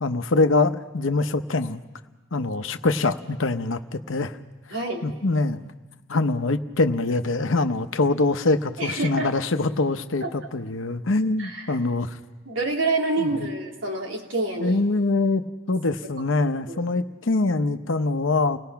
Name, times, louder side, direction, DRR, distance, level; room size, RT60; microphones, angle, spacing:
voice 1, 0.0-1.8 2.3-4.4 5.0-5.7 6.1-12.2 13.2-13.4 14.6-18.6, left 3 dB, 80° left, 9 dB, 0.8 m, -24 dB
voice 2, 4.7-5.1 8.8-9.3 10.2-10.3 11.4-11.7 12.4-14.8 16.7-16.9, right 2 dB, 80° right, -1 dB, 3.4 m, -27 dB
30.0 x 18.5 x 5.8 m, 1.3 s
head